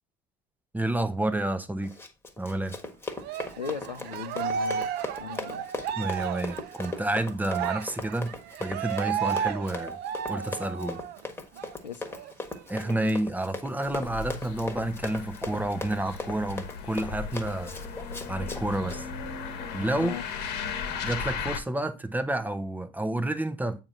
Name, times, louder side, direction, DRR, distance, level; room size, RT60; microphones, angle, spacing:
voice 1, 0.7-1.9 2.4-2.8 6.0-8.3 8.6-10.0 10.3-11.0 12.7-17.7 18.3-19.1 19.7-20.1 21.0-23.8, right 1 dB, 10° right, 0.8 m, -30 dB
Run, 1.8-19.0, left 2 dB, 10° left, 1.5 m, -39 dB
Cheering, 3.2-11.2 11.6-11.7 12.1-13.1, right 8 dB, 50° right, 0.8 m, -33 dB
voice 2, 3.6-4.9 5.2-5.7 11.8-12.3 19.9-20.2, left 6 dB, 90° left, 0.6 m, -37 dB
sound 1, 13.8-21.6, left 5 dB, 55° left, 1.3 m, -36 dB
8.7 x 2.9 x 6.0 m
figure-of-eight pair, 60°, 21 cm